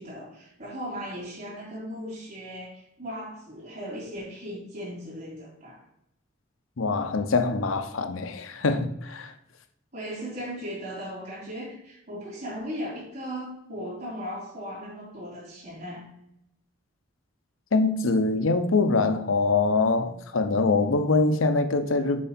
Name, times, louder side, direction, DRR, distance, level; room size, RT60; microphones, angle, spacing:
voice 1, 0.0-5.8 9.9-16.1, equal, 50° right, 3.1 m, -37 dB
voice 2, 6.8-9.3 17.7-22.2, left 3 dB, 75° left, 0.7 m, -24 dB
7.5 x 4.5 x 4.3 m
head